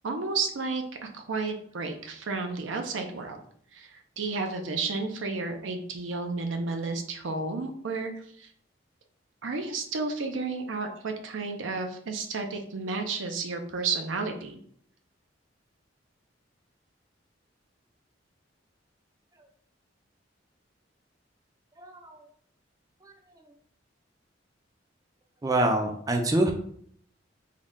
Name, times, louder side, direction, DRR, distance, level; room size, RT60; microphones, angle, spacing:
voice 1, 0.0-3.4 3.7-8.1 8.4-8.5 9.4-14.6, right 4 dB, 80° right, 4 dB, 0.5 m, -32 dB
voice 2, 21.8-22.2 25.4-26.5, right 1 dB, 20° right, 3 dB, 0.3 m, -25 dB
3.7 x 2.1 x 3.6 m, 0.62 s
head